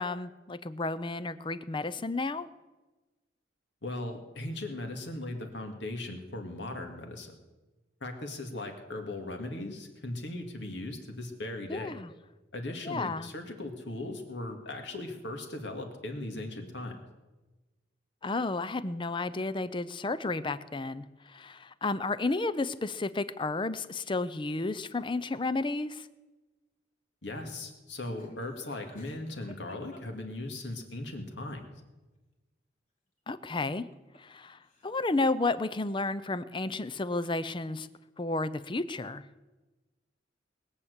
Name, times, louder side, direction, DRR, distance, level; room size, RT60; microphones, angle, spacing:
voice 1, 0.0-2.5 11.7-12.1 12.8-13.3 18.2-26.1 33.3-33.9 34.2-37.9 38.2-39.2, left 3 dB, 25° left, 15 dB, 0.5 m, -32 dB
voice 2, 3.8-7.3 8.0-12.0 12.5-17.0 27.2-31.7, left 2 dB, 70° left, 4 dB, 2.2 m, -38 dB
Laughter, 28.1-30.8 33.6-34.4 34.6-35.2, equal, 45° left, 2.3 m, -54 dB
20.5 x 7.3 x 8.1 m, 1.2 s
head